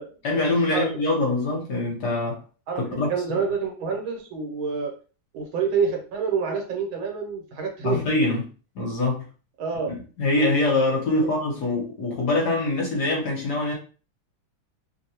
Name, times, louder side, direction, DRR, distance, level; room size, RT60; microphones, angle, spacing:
voice 1, 0.2-2.4 2.8-3.4 7.8-8.5 8.7-9.2 9.8-13.7, left 2 dB, 60° left, -1 dB, 1.3 m, -24 dB
voice 2, 2.7-4.9 5.3-8.0 9.6-9.9 11.2-11.3, right 5 dB, 75° right, 2 dB, 1.5 m, -27 dB
3.4 x 2.3 x 2.8 m, 0.36 s
omnidirectional pair, 2.3 m